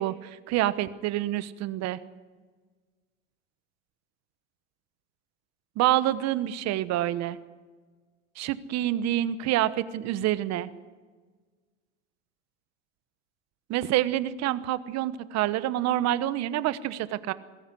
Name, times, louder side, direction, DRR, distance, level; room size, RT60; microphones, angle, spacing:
voice 1, 0.0-2.0 5.8-7.4 8.4-10.7 13.7-17.3, right 13 dB, 45° right, 15 dB, 1.2 m, -27 dB
21.5 x 14.0 x 10.0 m, 1.4 s
hypercardioid pair, 105°, 38 cm